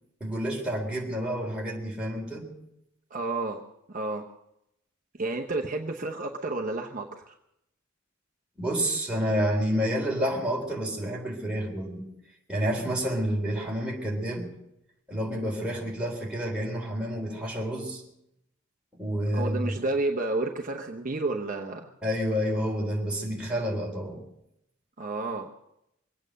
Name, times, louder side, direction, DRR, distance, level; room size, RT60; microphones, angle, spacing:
voice 1, 0.2-2.5 8.6-12.0 12.5-14.5 15.1-18.0 19.0-19.8 22.0-24.2, equal, 5° right, -3 dB, 3.8 m, -29 dB
voice 2, 3.1-3.6 3.9-4.2 5.2-7.3 19.3-21.9 25.0-25.5, right 2 dB, 40° right, 1 dB, 0.9 m, -31 dB
23.5 x 9.0 x 6.5 m, 0.82 s
head